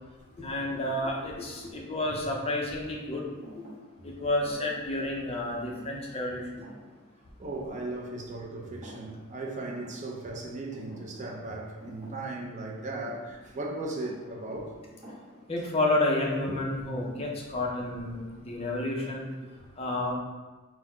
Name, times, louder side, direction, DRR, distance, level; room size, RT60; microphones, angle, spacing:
voice 1, 0.4-3.2 3.5-3.6 4.0-6.6 15.5-19.3 19.8-20.1, left 2 dB, 30° left, 0.5 m, -30 dB
Thump thud, 3.4-8.4 8.7-9.3 9.6-15.7, right 1 dB, 20° right, 1.2 m, -51 dB
voice 2, 7.4-14.8 16.5-16.6 19.4-19.6, right 2 dB, 35° right, 0.4 m, -37 dB
3.8 x 2.0 x 4.3 m
head